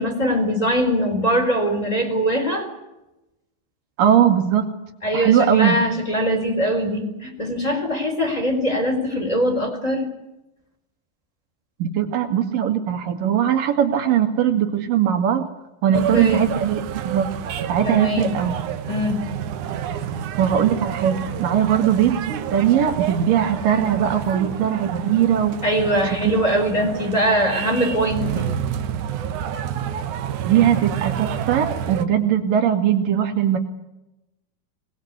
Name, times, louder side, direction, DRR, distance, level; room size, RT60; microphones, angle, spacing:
voice 1, 0.0-2.7 5.0-10.1 15.9-16.4 17.8-18.4 18.9-19.3 25.6-28.5, equal, 10° left, 4 dB, 3.6 m, -22 dB
voice 2, 4.0-4.6 5.1-5.8 11.8-15.4 15.8-17.3 17.7-18.6 20.4-25.6 26.2-26.3 30.4-33.6, right 9 dB, 55° right, 5 dB, 3.4 m, -20 dB
sound 1, 15.9-32.1, right 9 dB, 90° right, 1.7 m, -29 dB
24.5 x 20.0 x 8.2 m, 0.95 s
omnidirectional pair, 5.5 m